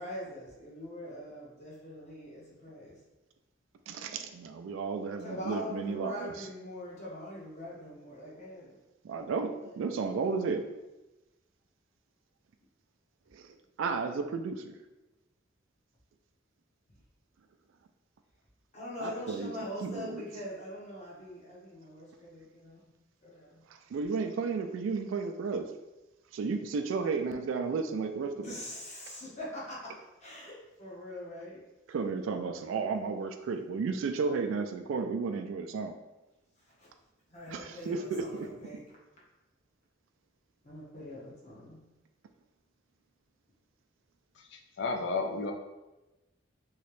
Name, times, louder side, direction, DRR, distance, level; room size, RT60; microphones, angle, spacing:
voice 1, 0.0-3.0 5.2-8.7 18.7-22.9 23.2-23.6 28.3-31.6 36.8-36.9 37.3-38.8 40.6-41.8, left 1 dB, 35° left, -6 dB, 0.9 m, -43 dB
voice 2, 3.9-6.3 9.0-10.6 13.3-13.5 13.8-14.8 19.0-19.5 19.8-20.2 23.9-25.7 26.3-28.5 31.9-35.9 37.5-38.5, right 4 dB, 80° right, 7 dB, 0.3 m, -33 dB
voice 3, 44.8-45.5, left 3 dB, 65° left, 4 dB, 0.4 m, -31 dB
3.1 x 2.8 x 3.0 m, 1.0 s
head